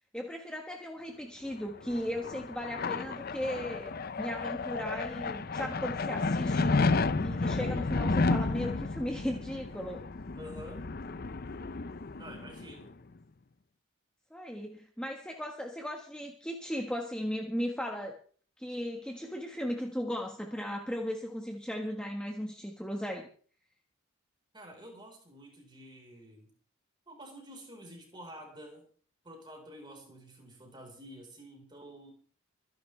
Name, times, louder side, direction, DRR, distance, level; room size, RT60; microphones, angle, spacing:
voice 1, 0.1-10.0 14.3-18.2 18.6-23.3, equal, 5° left, 1.6 m, -37 dB
sound 1, 1.6-12.9, left 3 dB, 45° left, 0.6 m, -32 dB
voice 2, 10.4-10.9 12.2-12.9 24.5-26.5 27.1-28.9 29.2-32.1, equal, 20° right, 4.7 m, -49 dB
25.5 x 11.0 x 3.4 m
head